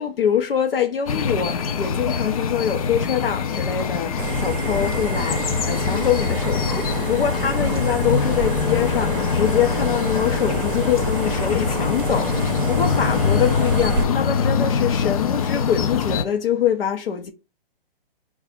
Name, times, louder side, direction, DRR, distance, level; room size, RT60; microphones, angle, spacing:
voice 1, 0.0-17.3, left 9 dB, 70° left, 0.8 m, -24 dB
sound 1, 1.1-16.2, left 6 dB, 40° left, 0.4 m, -23 dB
sound 2, 4.2-14.0, right 6 dB, 60° right, 0.6 m, -29 dB
4.0 x 2.4 x 3.7 m
hypercardioid pair, 135°, 30 cm